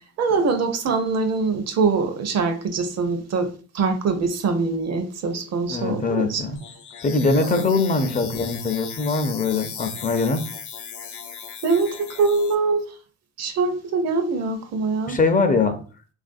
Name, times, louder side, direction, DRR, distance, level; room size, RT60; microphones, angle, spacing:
voice 1, 0.2-3.5 3.7-6.4 7.4-7.6 11.6-12.8 13.4-15.2, right 4 dB, 60° right, 0.6 m, -23 dB
voice 2, 5.7-6.6 7.0-10.4 15.1-15.8, left 3 dB, 30° left, 0.5 m, -22 dB
sound 1, 6.5-12.5, left 7 dB, 70° left, 0.6 m, -37 dB
3.3 x 2.4 x 2.5 m
cardioid pair, 90°, 30 cm